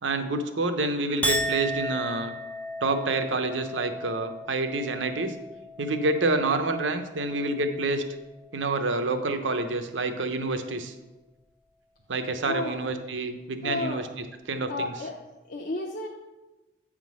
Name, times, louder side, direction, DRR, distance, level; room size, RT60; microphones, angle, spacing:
voice 1, 0.0-2.3 2.8-5.3 5.8-8.0 8.5-10.9 12.1-15.1, right 2 dB, 85° right, 8 dB, 0.8 m, -28 dB
Chink clink, 1.2-7.8 8.2-8.7, equal, 10° left, 0.5 m, -35 dB
voice 2, 12.5-12.9 13.6-14.0 14.7-15.2 15.5-16.1, left 2 dB, 50° left, 0 dB, 0.6 m, -32 dB
8.8 x 3.7 x 6.1 m, 1.1 s
head